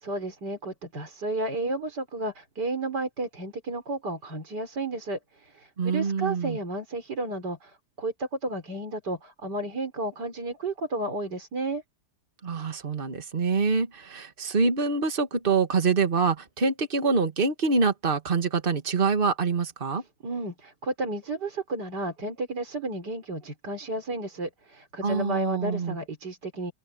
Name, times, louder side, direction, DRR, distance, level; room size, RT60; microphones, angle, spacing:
voice 1, 0.0-11.8 20.2-26.7, right 2 dB, 75° right, 4.9 m, -32 dB
voice 2, 5.8-6.6 12.4-20.0 25.0-26.0, right 4 dB, 30° right, 1.9 m, -25 dB
open air
omnidirectional pair, 1.8 m